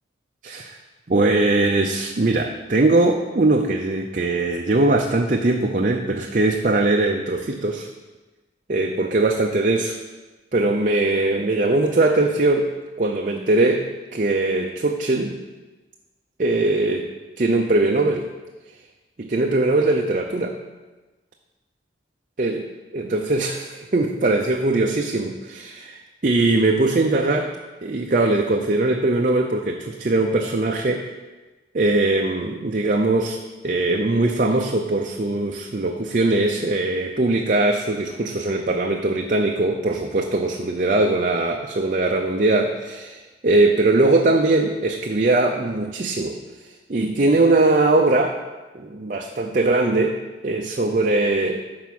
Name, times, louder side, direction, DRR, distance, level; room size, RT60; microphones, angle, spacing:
voice 1, 0.4-0.8 1.1-7.9 8.7-10.0 10.5-12.7 13.0-15.4 16.4-17.1 17.4-18.3 19.2-20.6 22.4-22.6 22.9-27.5 27.8-31.1 31.7-46.4 46.9-48.4 48.7-51.6, right 2 dB, 45° right, 2 dB, 0.6 m, -21 dB
12.0 x 4.7 x 6.0 m, 1.2 s
head